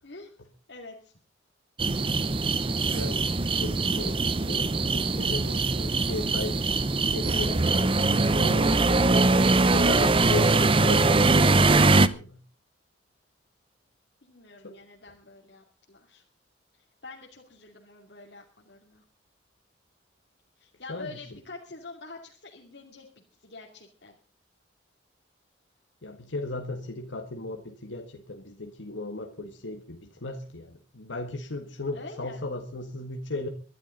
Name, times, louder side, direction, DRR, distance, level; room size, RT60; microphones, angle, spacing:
voice 1, 0.7-1.1 14.2-16.2 17.0-19.0 20.6-23.1 23.4-24.2 31.9-32.4, left 3 dB, 65° left, -2 dB, 2.7 m, -46 dB
sound 1, 1.8-12.1, right 3 dB, 30° right, 0.6 m, -22 dB
voice 2, 2.8-6.6 7.0-7.8 8.3-12.4 14.6-14.8 20.9-21.2 26.0-33.5, left 2 dB, 85° left, 3 dB, 1.7 m, -36 dB
23.0 x 12.0 x 3.9 m, 0.37 s
head